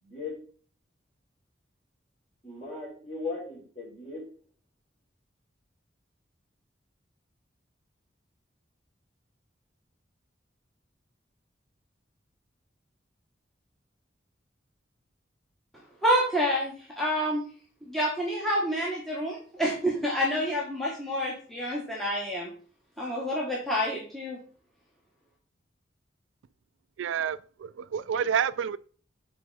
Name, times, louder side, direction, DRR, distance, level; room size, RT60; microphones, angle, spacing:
voice 1, 0.0-0.4 2.4-4.3, left 3 dB, 30° left, 3.8 m, -37 dB
voice 2, 16.0-17.4 17.8-22.5 23.0-24.4, equal, ahead, 1.2 m, -28 dB
voice 3, 27.0-28.8, right 8 dB, 90° right, 0.3 m, -29 dB
6.1 x 4.3 x 4.8 m
head